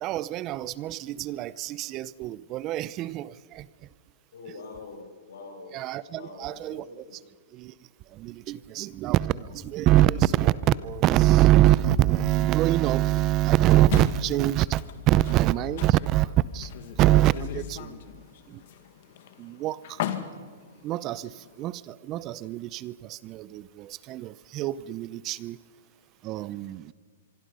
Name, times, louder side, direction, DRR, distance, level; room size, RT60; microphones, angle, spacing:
voice 1, 0.0-3.6 5.7-6.8 7.6-7.7 8.2-10.6 10.8-14.8 15.1-16.3 16.5-16.7 17.0-17.9 19.4-19.8 20.8-21.3 21.6-25.6 26.2-26.8, right 14 dB, 35° right, 20 dB, 0.6 m, -24 dB
voice 2, 4.3-5.8 6.1-7.1, left 3 dB, 75° left, 2 dB, 6.9 m, -44 dB
sound 1, 13.9-21.7, left 10 dB, 60° left, 1.9 m, -39 dB
25.0 x 24.5 x 5.5 m, 1.6 s
hypercardioid pair, 135°, 0 cm